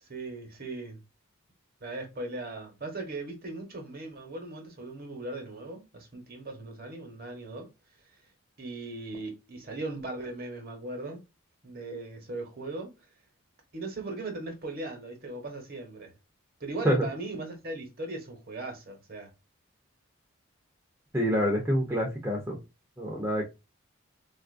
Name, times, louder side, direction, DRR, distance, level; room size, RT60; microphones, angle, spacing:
voice 1, 0.0-1.0 1.8-7.7 8.6-11.2 11.6-12.9 13.7-16.1 16.6-19.3, right 2 dB, 45° right, 1.1 m, -38 dB
voice 2, 21.1-22.6 23.0-23.4, equal, 10° right, 0.7 m, -26 dB
4.0 x 2.5 x 2.5 m
head